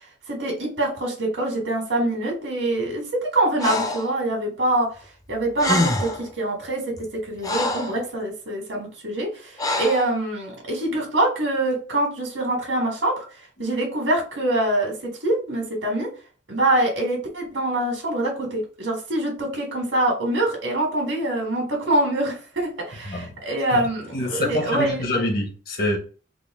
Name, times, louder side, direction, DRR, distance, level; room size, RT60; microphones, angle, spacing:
voice 1, 0.3-4.9 5.3-13.2 13.6-16.1 16.5-25.0, right 1 dB, 90° right, 1.5 m, -24 dB
Breathing, 3.6-4.1 5.3-5.4 5.6-6.3 7.0-8.0 9.6-10.1, left 2 dB, 20° left, 0.4 m, -25 dB
voice 2, 24.1-26.0, left 1 dB, 55° left, 1.0 m, -25 dB
3.6 x 2.2 x 3.5 m
head